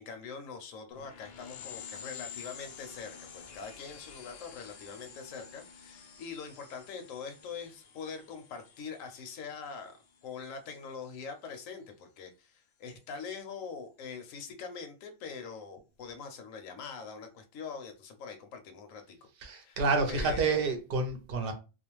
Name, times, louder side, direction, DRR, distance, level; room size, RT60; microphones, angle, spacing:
voice 1, 0.0-10.0 10.2-19.8 20.1-20.4, left 5 dB, 80° left, 1.0 m, -43 dB
sound 1, 0.9-11.0, left 7 dB, 65° left, 0.6 m, -50 dB
voice 2, 19.4-21.5, right 4 dB, 55° right, 0.7 m, -29 dB
2.4 x 2.2 x 2.9 m
omnidirectional pair, 1.4 m